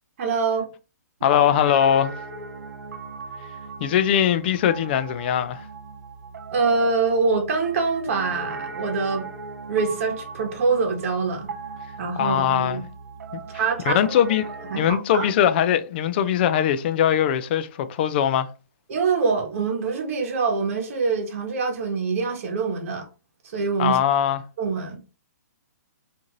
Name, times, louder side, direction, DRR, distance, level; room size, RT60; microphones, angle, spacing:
voice 1, 0.2-0.7 6.5-9.2 9.7-11.5 12.0-12.8 13.5-14.2 14.7-15.3 18.9-23.1 23.4-24.0 24.6-25.0, right 4 dB, 50° right, 1.0 m, -24 dB
voice 2, 1.2-2.1 3.8-5.6 12.2-12.8 13.3-13.4 13.9-14.5 14.7-18.5 23.8-24.4, left 9 dB, 35° left, 0.3 m, -21 dB
Piano, 1.2-14.9, right 4 dB, 80° right, 0.7 m, -38 dB
2.6 x 2.5 x 2.9 m
hypercardioid pair, 150°, 9 cm